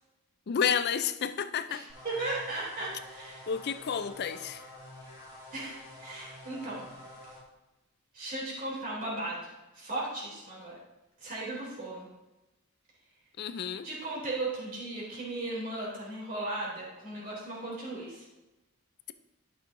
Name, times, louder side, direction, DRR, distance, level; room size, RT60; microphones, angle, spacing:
voice 1, 0.5-1.8 3.5-4.6 13.4-13.9, left 7 dB, 50° left, 12 dB, 0.4 m, -30 dB
voice 2, 1.7-3.4 5.5-6.8 8.1-10.8 11.2-12.1 13.8-18.2, right 2 dB, 40° right, -6 dB, 2.9 m, -36 dB
sound 1, 1.9-7.4, left 1 dB, 15° right, 2.3 m, -49 dB
12.0 x 6.2 x 2.6 m, 1.0 s
head